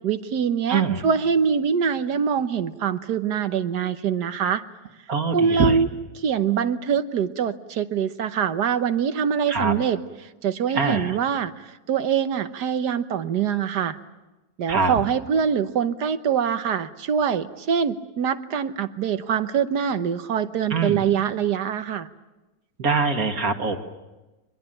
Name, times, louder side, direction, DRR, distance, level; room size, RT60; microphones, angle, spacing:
voice 1, 0.0-4.6 5.3-5.9 6.1-11.5 11.9-14.0 14.6-22.1, right 7 dB, 90° right, 11 dB, 1.7 m, -24 dB
voice 2, 0.7-1.0 5.1-5.8 9.5-9.7 10.7-11.1 14.7-14.9 20.7-21.0 22.8-23.8, right 4 dB, 60° right, 4 dB, 2.5 m, -23 dB
24.0 x 22.0 x 9.1 m, 1.1 s
omnidirectional pair, 1.7 m